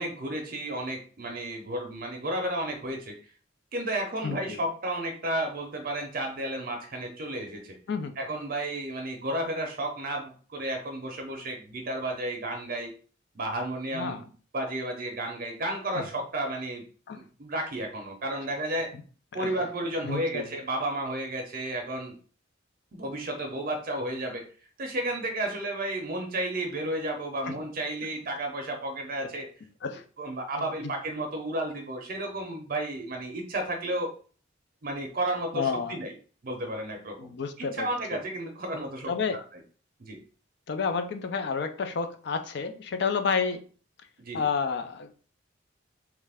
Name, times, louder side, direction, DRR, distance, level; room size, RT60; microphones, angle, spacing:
voice 1, 0.0-3.2 3.7-7.8 8.2-12.9 13.4-14.3 14.5-16.8 17.4-18.9 19.3-22.1 22.9-24.4 24.8-29.5 30.2-34.1 34.8-36.1 36.4-37.3 37.6-39.4 40.0-40.2 44.2-44.5, right 1 dB, 45° right, 3 dB, 0.6 m, -32 dB
voice 2, 4.2-4.6 7.9-8.1 13.9-14.2 15.9-16.0 17.1-17.2 18.9-19.0 19.3-19.6 20.0-20.5 27.5-27.6 29.8-30.0 35.5-36.0 37.2-38.2 39.1-39.4 40.7-43.6 44.3-45.1, left 5 dB, 60° left, 8 dB, 0.4 m, -30 dB
3.1 x 2.4 x 3.4 m, 0.41 s
head